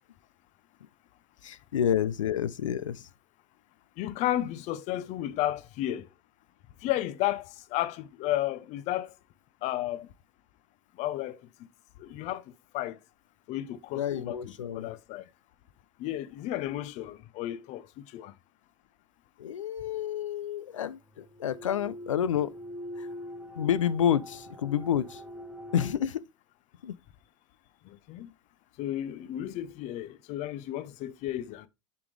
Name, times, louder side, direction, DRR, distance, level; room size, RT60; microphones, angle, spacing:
voice 1, 1.4-3.1 14.0-14.9 19.4-22.5 23.0-23.1 23.5-25.2 25.7-26.2 26.8-26.9, left 9 dB, 90° left, 0.5 m, -29 dB
voice 2, 4.0-6.1 6.8-9.1 9.6-10.1 11.0-11.4 12.0-12.4 12.7-13.0 13.5-15.2 16.0-18.3 27.8-28.3 28.8-31.7, left 13 dB, 50° left, 0.7 m, -33 dB
sound 1, 21.2-25.9, equal, 5° right, 1.2 m, -43 dB
6.8 x 5.2 x 3.2 m
hypercardioid pair, 95°, 16 cm